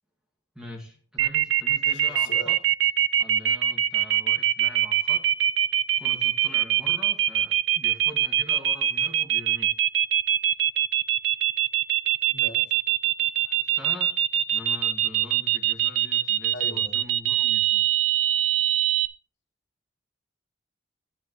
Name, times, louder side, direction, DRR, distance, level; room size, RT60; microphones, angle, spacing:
voice 1, 0.6-2.6 3.2-5.3 6.0-9.7 13.5-14.1 14.5-17.9, equal, 5° right, -1 dB, 2.0 m, -43 dB
sound 1, 1.2-19.1, right 12 dB, 70° right, 0.5 m, -22 dB
voice 2, 1.9-2.5 12.3-12.8 16.5-17.1, equal, 65° left, 3 dB, 1.9 m, -41 dB
12.5 x 10.0 x 3.1 m, 0.41 s
head